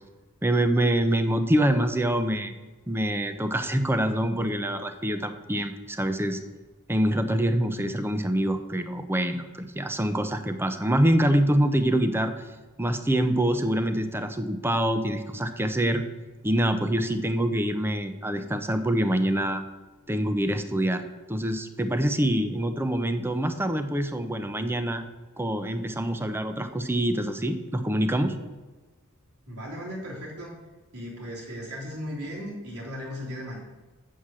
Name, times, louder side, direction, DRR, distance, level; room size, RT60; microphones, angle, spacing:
voice 1, 0.4-2.5 2.9-6.4 6.9-12.3 12.8-16.0 16.4-19.6 20.1-21.0 21.3-25.0 25.4-28.3, right 1 dB, 10° right, 8 dB, 0.6 m, -25 dB
voice 2, 29.5-30.6 30.9-33.6, equal, 85° right, -5 dB, 3.4 m, -36 dB
7.1 x 6.4 x 7.5 m, 1.2 s
head